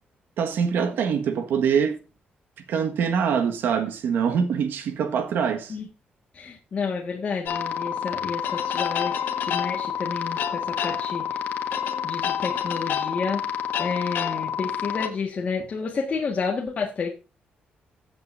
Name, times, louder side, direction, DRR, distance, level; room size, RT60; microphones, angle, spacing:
voice 1, 0.4-2.0 2.7-5.8, right 7 dB, 85° right, 1.6 m, -24 dB
voice 2, 6.3-9.1 9.4-11.4 12.0-13.4 13.8-17.1, left 5 dB, 40° left, 1.7 m, -30 dB
sound 1, 7.4-15.1, left 8 dB, 70° left, 1.4 m, -28 dB
15.5 x 7.9 x 2.6 m
cardioid pair, 135°, 3 cm